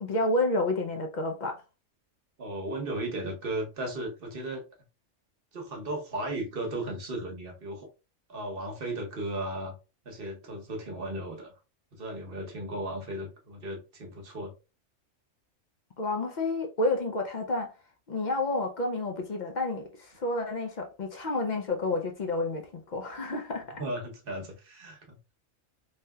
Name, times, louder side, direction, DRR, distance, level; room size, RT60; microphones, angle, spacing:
voice 1, 0.0-1.6 16.0-17.7 18.1-23.8, left 2 dB, 60° left, 0.5 m, -30 dB
voice 2, 2.4-4.6 5.5-7.9 8.3-9.7 10.0-11.5 11.9-14.5 23.8-25.2, right 1 dB, 50° right, 1.0 m, -35 dB
3.4 x 2.7 x 2.2 m
omnidirectional pair, 1.3 m